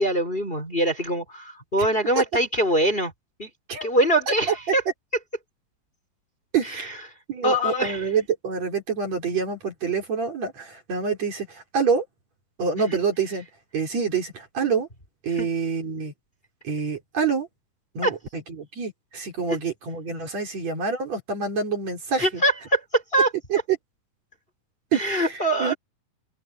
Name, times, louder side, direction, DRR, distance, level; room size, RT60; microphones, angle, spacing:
voice 1, 0.0-3.1 3.4-3.5 3.8-4.8 6.7-7.0 7.4-8.1 12.9-13.0 15.3-15.5 18.0-18.1 22.2-23.6 24.9-25.7, right 1 dB, 15° left, 4.5 m, -23 dB
voice 2, 6.5-7.0 7.3-12.0 12.6-13.4 13.7-14.9 15.2-16.1 16.6-17.5 17.9-18.2 18.6-22.4 23.5-23.6 24.9-25.3 25.6-25.7, right 5 dB, 50° right, 5.1 m, -26 dB
open air
omnidirectional pair, 4.1 m